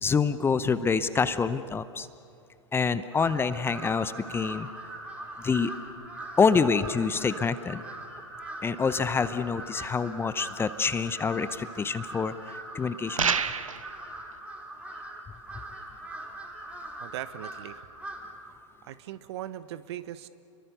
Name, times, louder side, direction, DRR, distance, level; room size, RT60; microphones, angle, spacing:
voice 1, 0.0-2.1 2.7-4.7 5.4-5.7 6.4-7.8 8.6-13.3, left 5 dB, 15° left, 14 dB, 0.7 m, -26 dB
Crow, 3.1-18.5, right 1 dB, 5° right, 3.6 m, -41 dB
sound 1, 13.2-13.9, right 6 dB, 85° right, 0.9 m, -27 dB
voice 2, 17.0-17.8 18.8-20.3, right 12 dB, 55° right, 14 dB, 1.1 m, -39 dB
29.5 x 23.0 x 6.8 m, 2.5 s
figure-of-eight pair, 105°, 17 cm